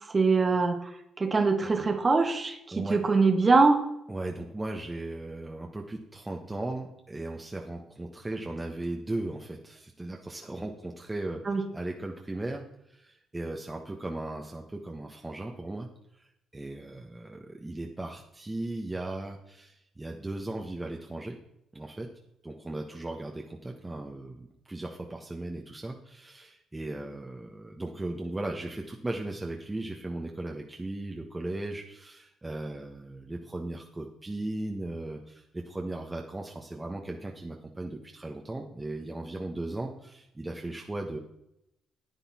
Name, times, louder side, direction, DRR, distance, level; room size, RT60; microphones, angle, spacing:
voice 1, 0.1-0.9 1.2-3.8 11.5-11.6, right 4 dB, 30° right, 6 dB, 1.6 m, -23 dB
voice 2, 4.1-11.4 11.7-15.9 16.5-21.4 21.7-22.1 22.4-41.2, right 2 dB, 15° right, 1 dB, 1.2 m, -37 dB
10.0 x 9.1 x 4.3 m, 0.80 s
cardioid pair, 90°, 0 cm